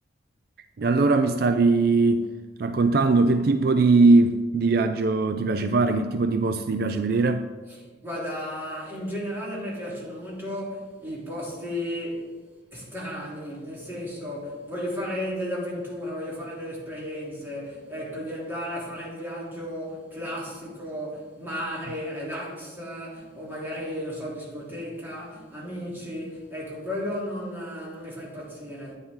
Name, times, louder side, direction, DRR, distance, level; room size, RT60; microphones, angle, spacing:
voice 1, 0.8-2.3 2.6-7.5, right 3 dB, 55° right, 0.4 m, -20 dB
voice 2, 7.8-12.3 12.7-28.9, equal, 10° right, 3.4 m, -34 dB
10.5 x 9.7 x 3.8 m
head